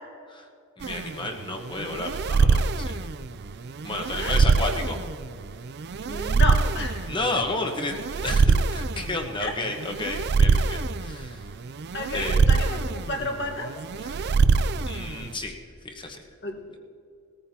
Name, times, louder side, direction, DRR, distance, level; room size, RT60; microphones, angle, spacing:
voice 1, 0.8-3.1 3.8-5.0 7.1-11.5 12.1-12.4 14.0-14.3 14.8-15.5 15.8-16.2, left 2 dB, 20° left, 3 dB, 1.1 m, -32 dB
sound 1, 0.8-15.3, right 4 dB, 50° right, 0.4 m, -24 dB
voice 2, 6.1-7.1 9.4-9.5 11.9-13.7 16.4-16.8, left 2 dB, 50° left, 2 dB, 1.5 m, -31 dB
20.0 x 14.0 x 2.9 m, 2.5 s
head